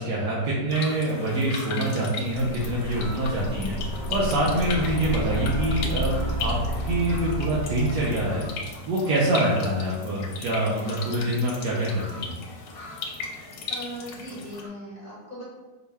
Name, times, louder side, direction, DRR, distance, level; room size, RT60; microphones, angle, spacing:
voice 1, 0.0-6.1 6.4-6.6 6.8-8.5 8.9-12.3, right 1 dB, 85° right, -6 dB, 1.3 m, -25 dB
sound 1, 0.7-14.6, left 4 dB, 75° left, 1.1 m, -38 dB
sound 2, 0.7-1.9 2.2-5.0 5.4-9.7 10.2-14.7, left 1 dB, 55° left, 0.7 m, -46 dB
sound 3, 2.3-8.7, equal, 50° right, 1.3 m, -31 dB
voice 2, 13.7-15.4, equal, 25° right, -9 dB, 1.0 m, -38 dB
4.4 x 2.2 x 3.3 m, 1.2 s
omnidirectional pair, 1.8 m